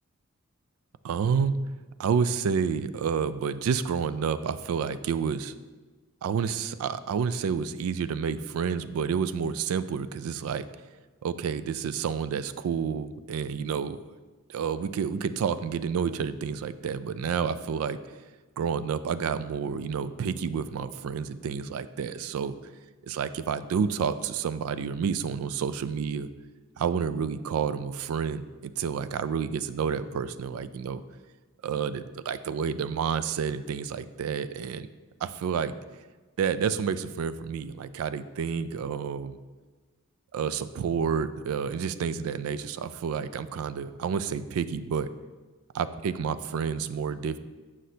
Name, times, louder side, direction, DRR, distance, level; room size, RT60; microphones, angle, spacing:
voice 1, 1.0-1.6 2.0-5.5 6.2-10.7 11.2-14.0 14.5-18.0 18.6-22.5 23.1-26.3 26.8-31.0 31.6-34.9 35.2-35.7 36.4-39.4 40.3-45.1 45.7-47.4, right 6 dB, 70° right, 14 dB, 0.3 m, -29 dB
6.3 x 5.9 x 2.7 m, 1.3 s
head